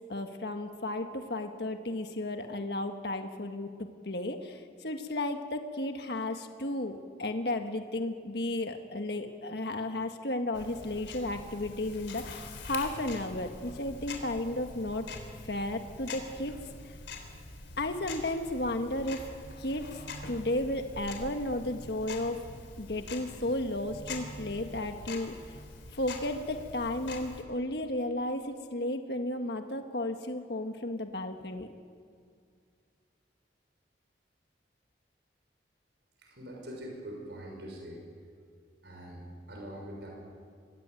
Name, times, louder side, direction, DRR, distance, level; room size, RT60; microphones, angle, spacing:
voice 1, 0.1-3.7 4.0-15.0 15.5-16.5 17.8-19.3 19.6-20.0 20.2-22.4 22.8-25.3 25.9-31.7, left 1 dB, 60° left, 5 dB, 1.6 m, -33 dB
Tick-tock, 10.5-27.4, left 3 dB, 85° left, 3.7 m, -44 dB
voice 2, 36.2-38.0 38.8-40.1, equal, 65° right, 0 dB, 6.6 m, -43 dB
24.5 x 21.0 x 9.2 m, 2.2 s
head